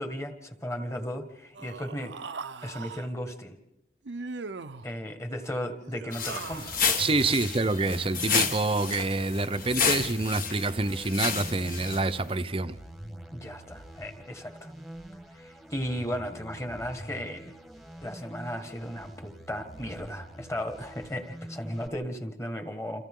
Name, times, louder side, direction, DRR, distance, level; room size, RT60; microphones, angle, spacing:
voice 1, 0.0-2.2 2.6-3.6 4.8-6.8 13.3-14.7 15.3-17.5 18.0-23.1, equal, 15° left, 1.8 m, -35 dB
Human voice, 1.5-3.1 4.1-4.9 5.8-7.0, right 4 dB, 75° right, 0.7 m, -40 dB
sound 1, 6.1-12.3, left 6 dB, 50° left, 1.7 m, -31 dB
sound 2, 6.5-21.9, right 1 dB, ahead, 1.3 m, -46 dB
voice 2, 7.0-12.8, right 3 dB, 30° right, 0.7 m, -27 dB
29.0 x 28.0 x 3.8 m
head